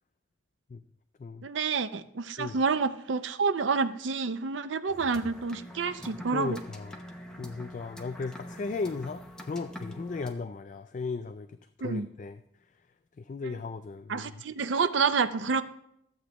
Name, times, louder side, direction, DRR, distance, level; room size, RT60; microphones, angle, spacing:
voice 1, 1.4-6.6 11.8-12.1 13.4-13.5 14.1-15.6, right 5 dB, 80° right, 12 dB, 0.5 m, -28 dB
sound 1, 4.9-10.3, equal, 5° left, 0.8 m, -45 dB
voice 2, 6.3-7.0 7.4-12.4 13.2-14.4, left 4 dB, 40° left, 10 dB, 0.3 m, -36 dB
13.0 x 7.9 x 3.0 m, 0.76 s
head